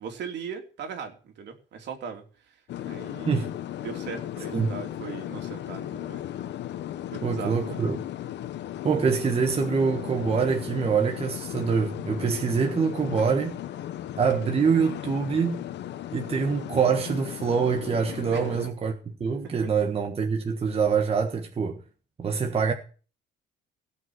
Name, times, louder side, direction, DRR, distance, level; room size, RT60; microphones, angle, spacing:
voice 1, 0.0-2.6 2.8-3.5 3.8-6.2 7.1-7.8 18.3-18.5, right 6 dB, 65° right, 3.1 m, -39 dB
sound 1, 2.7-18.7, left 12 dB, 65° left, 1.0 m, -36 dB
voice 2, 7.2-8.0 8.8-13.6 14.2-15.6 16.1-21.8 22.2-22.7, right 6 dB, 30° right, 1.5 m, -25 dB
17.5 x 5.9 x 7.9 m
cardioid pair, 125°, 19 cm